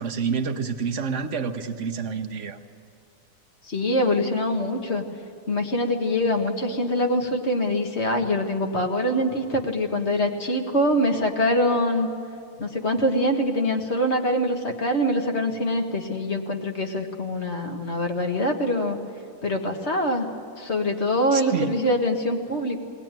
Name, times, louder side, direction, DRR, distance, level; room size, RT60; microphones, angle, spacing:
voice 1, 0.0-2.6 21.3-21.7, right 6 dB, 50° right, 0.9 m, -28 dB
voice 2, 3.6-5.0 5.5-12.1 12.6-19.0 19.4-20.3 20.6-22.8, left 1 dB, 35° left, 1.8 m, -24 dB
21.0 x 19.0 x 9.1 m
omnidirectional pair, 2.2 m